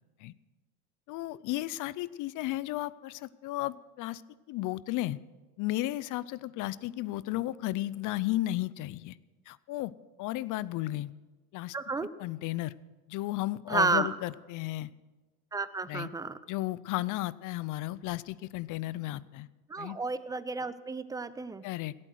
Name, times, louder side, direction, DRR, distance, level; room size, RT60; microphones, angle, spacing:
voice 1, 1.1-4.2 4.5-5.2 5.6-9.2 9.5-9.9 10.2-11.1 11.5-11.8 12.2-12.7 13.1-14.9 15.9-16.1 16.5-19.5 19.8-20.0 21.6-21.9, left 16 dB, 45° left, 20 dB, 0.5 m, -34 dB
voice 2, 11.7-12.1 13.7-14.1 15.5-16.3 19.7-21.6, right 3 dB, 10° right, 15 dB, 0.3 m, -31 dB
17.5 x 8.7 x 6.3 m, 1.2 s
supercardioid pair, 105°, 45 cm